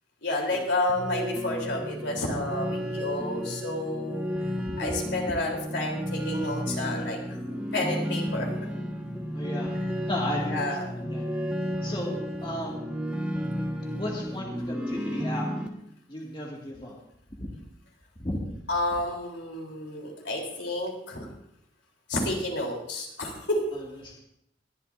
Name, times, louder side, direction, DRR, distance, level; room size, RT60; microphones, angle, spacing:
voice 1, 0.2-4.3 4.8-7.4 7.7-8.5 10.4-10.8 11.8-12.1 18.7-21.3 22.1-23.6, left 1 dB, 80° left, 0 dB, 3.6 m, -30 dB
sound 1, 0.9-15.7, equal, 5° right, 1.4 m, -32 dB
voice 2, 9.3-11.3 11.8-12.8 13.9-15.5 16.1-17.0 17.4-17.5 18.2-18.6 23.7-24.2, left 1 dB, 25° left, -3 dB, 2.1 m, -35 dB
21.5 x 12.0 x 2.6 m, 0.77 s
head